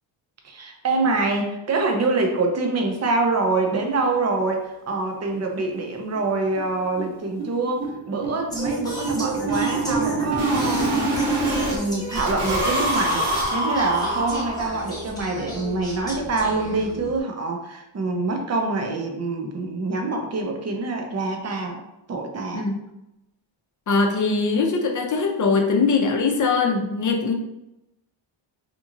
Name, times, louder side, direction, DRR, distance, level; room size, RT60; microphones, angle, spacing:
voice 1, 0.4-11.1 11.7-21.8 22.1-22.7, right 3 dB, 35° right, 3 dB, 0.6 m, -25 dB
sound 1, 4.9-5.0 5.3-5.4 5.7-5.8 6.1-6.3 6.6-11.8 12.1-14.9, right 2 dB, 50° right, 0.9 m, -26 dB
Singing, 8.5-17.2, equal, 10° left, 0.9 m, -34 dB
voice 2, 23.9-27.3, left 4 dB, 40° left, 2 dB, 0.6 m, -21 dB
2.9 x 2.6 x 2.5 m, 0.90 s
cardioid pair, 85°, 50 cm